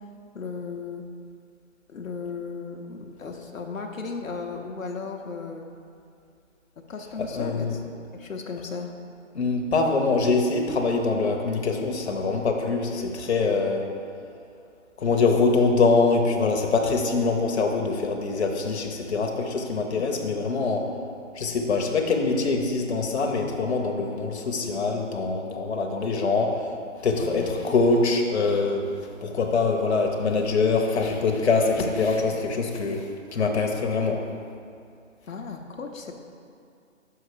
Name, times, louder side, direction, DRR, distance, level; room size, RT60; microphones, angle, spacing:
voice 1, 0.3-1.0 1.9-5.7 6.9-7.8 8.1-8.9 19.9-20.3 27.1-27.6 35.3-36.1, left 5 dB, 90° left, 3 dB, 0.8 m, -35 dB
voice 2, 7.2-7.8 9.3-13.9 15.0-20.9 21.3-26.7 27.0-34.2, left 4 dB, 60° left, 2 dB, 0.8 m, -24 dB
5.9 x 5.7 x 4.8 m, 2.4 s
figure-of-eight pair, 155°, 39 cm